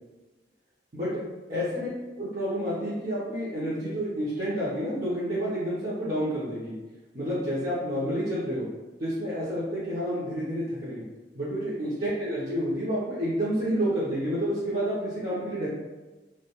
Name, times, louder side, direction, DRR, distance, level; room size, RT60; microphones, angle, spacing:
voice 1, 0.9-1.2 1.5-1.9 2.2-6.7 7.1-8.7 9.0-11.0 11.3-15.7, equal, 45° right, -11 dB, 0.6 m, -29 dB
2.2 x 2.1 x 2.8 m, 1.2 s
head